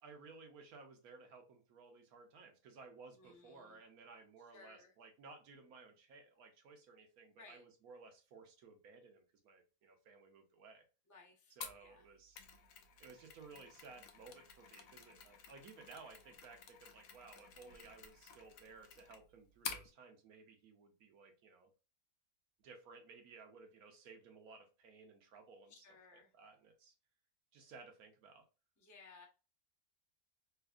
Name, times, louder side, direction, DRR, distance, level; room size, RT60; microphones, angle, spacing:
voice 1, 0.0-10.8 11.5-12.6 13.0-21.7 22.6-25.8 26.3-26.9 27.5-28.4, right 4 dB, 80° right, 1.3 m, -58 dB
voice 2, 3.1-3.8 4.5-4.9 7.4-7.6 11.1-12.1 25.7-26.3 28.8-29.3, left 4 dB, 25° left, 0.3 m, -60 dB
Mechanisms, 11.6-19.9, left 7 dB, 70° left, 1.0 m, -52 dB
3.9 x 2.5 x 2.4 m
omnidirectional pair, 1.6 m